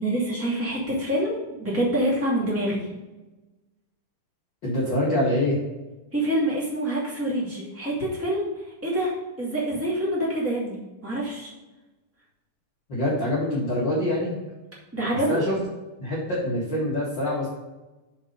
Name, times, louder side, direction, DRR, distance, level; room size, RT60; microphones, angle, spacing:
voice 1, 0.0-2.9 6.1-10.8 11.0-11.5 14.9-15.5, right 1 dB, 10° right, -5 dB, 0.5 m, -26 dB
voice 2, 4.6-5.6 12.9-14.4 15.3-15.6 16.0-17.5, left 1 dB, 70° left, -7 dB, 1.0 m, -25 dB
6.7 x 5.7 x 5.3 m, 1.1 s
omnidirectional pair, 5.2 m